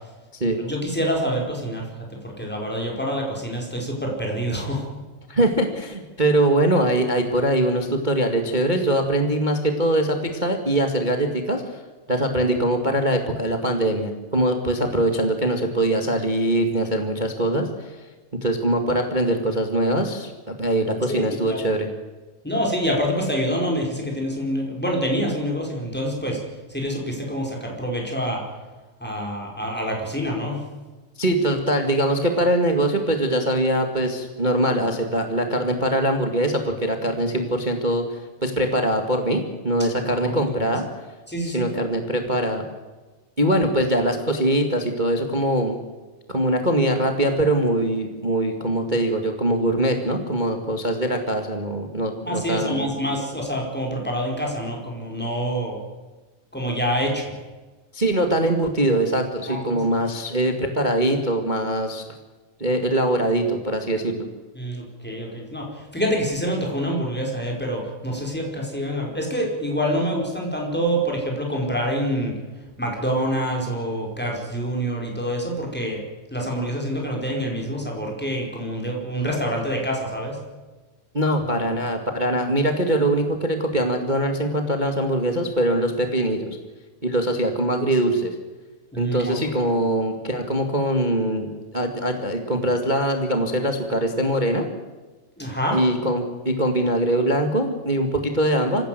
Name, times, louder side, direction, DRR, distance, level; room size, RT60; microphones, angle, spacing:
voice 1, 0.5-4.9 21.1-21.2 21.5-21.6 22.4-26.4 26.7-28.4 29.0-30.6 40.1-40.3 41.3-41.7 52.2-55.8 56.5-57.3 59.5-59.8 64.5-72.4 72.8-76.0 76.3-80.4 88.9-89.3 95.4-95.8, equal, 5° left, 0 dB, 4.6 m, -26 dB
voice 2, 5.3-11.8 12.1-17.9 18.4-21.9 31.2-40.8 41.4-42.6 43.4-45.8 46.3-52.9 57.9-62.0 62.6-64.3 81.1-86.6 87.0-88.3 89.0-94.7 95.7-98.8, right 1 dB, 20° right, 5 dB, 1.3 m, -22 dB
26.0 x 15.5 x 7.7 m, 1.2 s
omnidirectional pair, 3.8 m